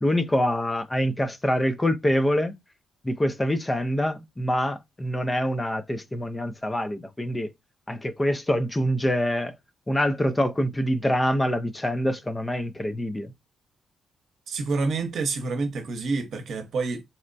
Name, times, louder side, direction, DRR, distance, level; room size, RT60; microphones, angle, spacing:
voice 1, 0.0-2.5 3.0-7.5 7.9-9.6 9.9-13.3, equal, 15° left, 0.5 m, -25 dB
voice 2, 14.5-17.0, right 3 dB, 65° right, 0.9 m, -28 dB
4.2 x 2.1 x 2.6 m
cardioid pair, 95°, 0 cm